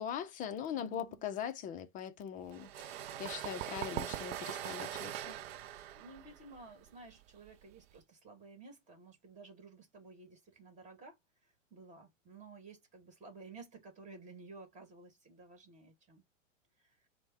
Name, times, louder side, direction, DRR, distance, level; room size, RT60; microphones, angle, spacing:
voice 1, 0.0-5.4, left 9 dB, 20° left, 0.5 m, -41 dB
voice 2, 0.7-1.3 5.9-16.2 16.8-17.1, right 3 dB, 20° right, 1.9 m, -54 dB
sound 1, 2.5-8.0, right 12 dB, 50° right, 0.5 m, -42 dB
4.5 x 2.2 x 4.3 m
hypercardioid pair, 120°, 38 cm